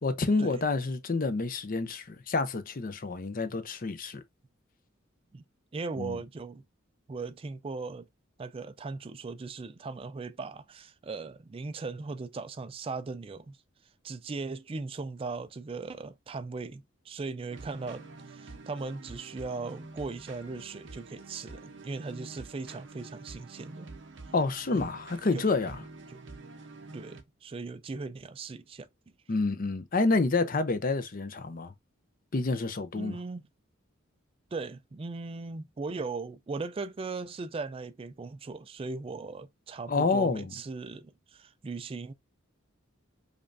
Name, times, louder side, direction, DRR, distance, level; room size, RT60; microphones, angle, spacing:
voice 1, 0.0-4.2 6.0-6.2 24.3-25.8 29.3-31.7 32.3-33.2 39.9-40.5, left 3 dB, 45° left, 0.6 m, -28 dB
voice 2, 5.7-6.6 7.1-8.1 8.4-13.6 14.0-23.9 24.7-24.9 25.3-25.5 26.1-26.2 26.9-28.9 32.9-33.4 34.5-42.1, right 3 dB, 25° right, 0.3 m, -38 dB
sound 1, 17.5-27.2, right 3 dB, 60° right, 0.7 m, -47 dB
5.2 x 2.5 x 2.5 m
head